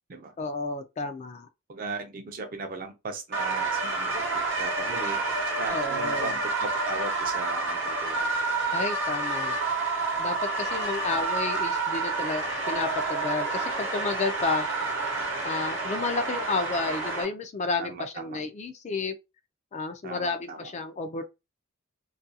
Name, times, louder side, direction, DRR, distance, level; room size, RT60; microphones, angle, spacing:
voice 1, 0.4-1.5 5.7-6.3 8.7-9.6 10.2-14.7 15.4-19.1 19.7-21.2, left 3 dB, 35° left, 0.3 m, -31 dB
voice 2, 1.7-8.3 17.8-18.4 20.0-20.7, right 4 dB, 45° right, 0.5 m, -37 dB
sound 1, 3.3-17.2, right 3 dB, 60° right, 0.8 m, -29 dB
2.4 x 2.2 x 2.7 m
head